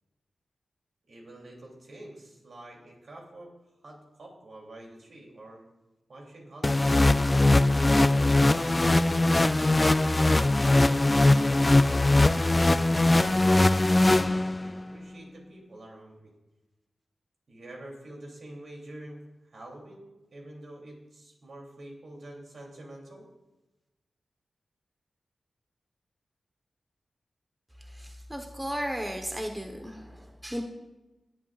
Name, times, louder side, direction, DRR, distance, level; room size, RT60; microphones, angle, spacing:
voice 1, 1.1-3.5 3.8-5.6 6.1-7.0 8.1-9.6 10.5-16.3 17.5-23.2, right 1 dB, 70° right, -1 dB, 3.1 m, -47 dB
sound 1, 6.6-14.8, left 2 dB, 25° left, 0.4 m, -21 dB
voice 2, 27.9-30.6, equal, 10° right, 3 dB, 1.2 m, -35 dB
18.5 x 8.2 x 2.5 m, 1.1 s
cardioid pair, 65°, 0 cm